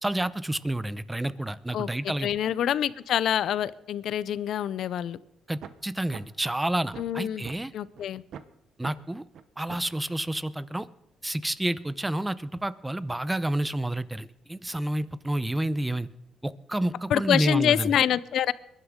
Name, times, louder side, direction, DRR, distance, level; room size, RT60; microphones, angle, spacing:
voice 1, 0.0-2.3 5.5-7.7 8.8-9.2 9.6-10.9 11.2-16.1 16.4-17.9, right 1 dB, 10° right, 16 dB, 0.7 m, -29 dB
voice 2, 2.2-5.2 7.0-7.5 7.7-8.2 17.1-18.5, left 10 dB, 70° left, 18 dB, 0.6 m, -26 dB
sound 1, 5.6-5.7 6.1-6.2 6.6-7.6 7.9-8.0 8.3-8.5 8.8-8.9 9.3-9.4 9.7-9.9, right 8 dB, 65° right, 0.9 m, -41 dB
22.0 x 11.5 x 3.7 m, 0.82 s
cardioid pair, 90°, 0 cm